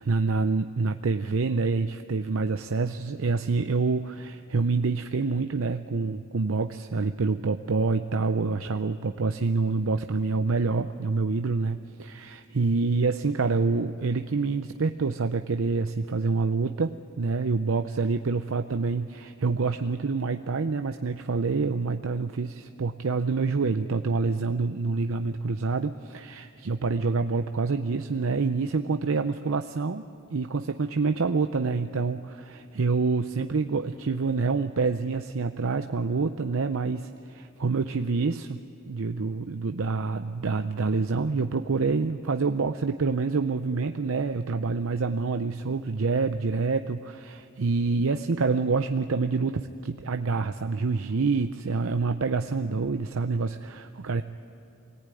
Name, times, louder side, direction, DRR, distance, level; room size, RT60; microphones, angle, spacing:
voice 1, 0.0-30.0 30.3-38.6 38.9-54.2, right 4 dB, 85° right, 7 dB, 0.6 m, -27 dB
24.0 x 18.5 x 9.2 m, 2.7 s
head